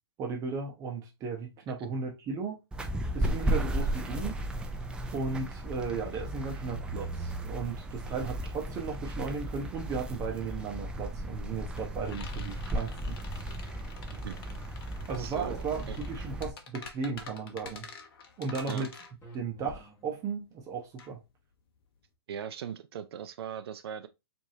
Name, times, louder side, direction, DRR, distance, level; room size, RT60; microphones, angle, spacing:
voice 1, 0.2-2.6 3.1-4.4 5.1-13.2 15.1-17.9 18.4-18.9 19.3-21.2, right 5 dB, 25° right, 0.8 m, -35 dB
sound 1, 2.7-16.5, right 1 dB, 5° right, 0.4 m, -35 dB
sound 2, 11.8-22.1, left 5 dB, 60° left, 0.9 m, -48 dB
voice 2, 15.2-16.0 18.7-18.8 22.3-24.1, right 8 dB, 65° right, 0.5 m, -39 dB
sound 3, 15.5-16.1 19.2-20.4, left 1 dB, 20° left, 1.5 m, -50 dB
4.7 x 2.7 x 2.7 m
hypercardioid pair, 130°, 14 cm